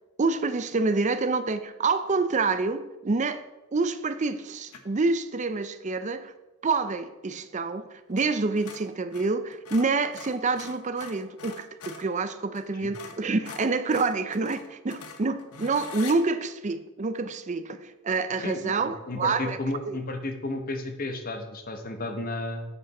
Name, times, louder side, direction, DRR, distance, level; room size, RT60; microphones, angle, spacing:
voice 1, 0.2-3.4 3.7-6.3 6.6-19.6 19.9-20.0, right 3 dB, 35° right, 11 dB, 0.5 m, -27 dB
sound 1, 4.7-5.0 8.1-8.3 8.6-12.1 12.5-12.7 12.9-16.2, left 5 dB, 85° left, 1.0 m, -43 dB
voice 2, 18.4-22.7, left 2 dB, 40° left, 6 dB, 0.9 m, -33 dB
8.3 x 5.2 x 5.3 m, 1.0 s
head